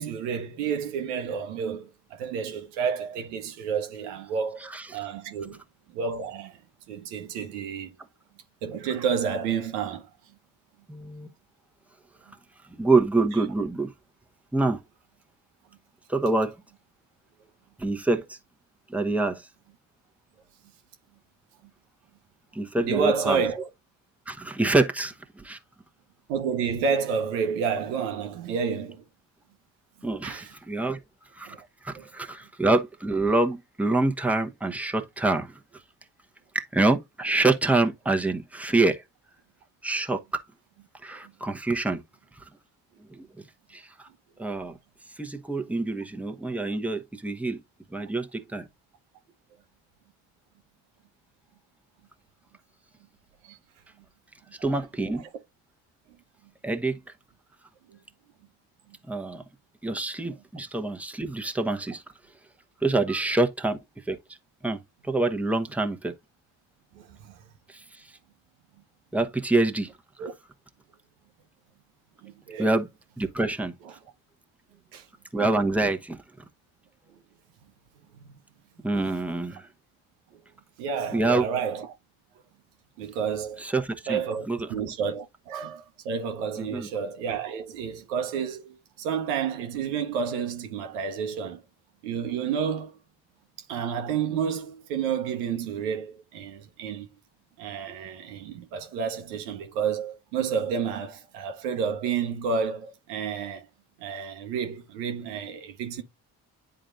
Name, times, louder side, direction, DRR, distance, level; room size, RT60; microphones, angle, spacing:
voice 1, 0.0-5.6 5.9-6.6 6.9-7.9 8.6-10.4 12.3-12.4 21.6-21.7 22.8-23.7 26.3-29.0 30.0-30.5 31.4-31.7 31.9-32.1 41.2-41.3 53.4-53.6 55.1-55.3 57.9-58.0 58.9-59.0 63.1-63.2 66.9-67.4 70.2-70.3 72.2-72.8 73.8-73.9 74.9-75.1 77.1-77.2 78.1-78.4 80.3-80.4 80.8-81.9 83.0-83.7 84.1-91.6 92.0-93.0 93.7-97.1 97.6-103.7 104.0-106.0, right 6 dB, 80° right, 0.9 m, -30 dB
voice 2, 10.9-11.3 12.8-13.9 14.5-14.8 16.1-16.6 17.8-18.4 18.9-19.5 22.5-23.4 24.3-25.6 30.0-31.0 31.3-31.5 31.8-35.6 36.5-39.0 39.8-40.4 41.0-42.0 42.4-42.5 43.1-43.4 43.7-44.1 44.4-44.8 45.2-47.6 47.9-48.7 54.6-55.2 56.6-57.0 59.1-59.4 59.8-62.0 62.8-63.8 64.1-64.2 64.6-66.1 67.7-68.1 69.1-69.9 70.2-70.3 72.6-72.9 73.2-73.7 75.3-76.2 78.8-79.7 81.1-81.4 83.6-84.2 84.5-84.9 86.6-86.9, right 2 dB, 5° right, 1.0 m, -26 dB
9.9 x 3.9 x 2.5 m
hypercardioid pair, 45°, 46 cm